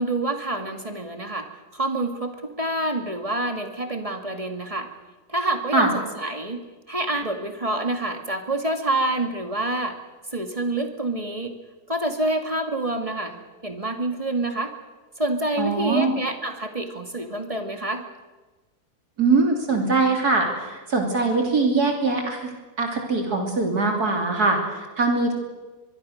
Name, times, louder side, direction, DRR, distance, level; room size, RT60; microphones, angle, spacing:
voice 1, 0.0-4.9 5.3-10.0 10.3-11.5 11.9-14.8 15.2-18.0, right 1 dB, 20° right, 5 dB, 2.1 m, -27 dB
voice 2, 15.6-16.1 19.2-22.5 22.8-25.3, right 3 dB, 70° right, 2 dB, 3.6 m, -22 dB
24.0 x 22.5 x 6.5 m, 1.2 s
omnidirectional pair, 1.7 m